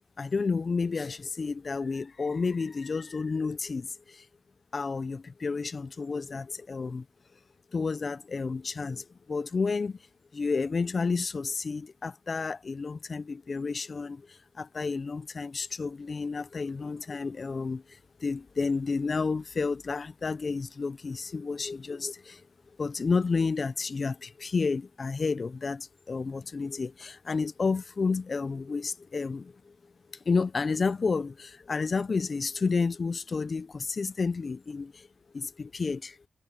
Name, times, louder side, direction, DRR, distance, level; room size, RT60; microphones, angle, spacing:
voice 1, 0.2-4.3 4.7-7.1 7.7-10.0 10.3-22.4 22.8-29.8 30.1-35.1 35.3-36.2, left 4 dB, 35° left, 0.5 m, -31 dB
wide cardioid pair, 135°, 0 cm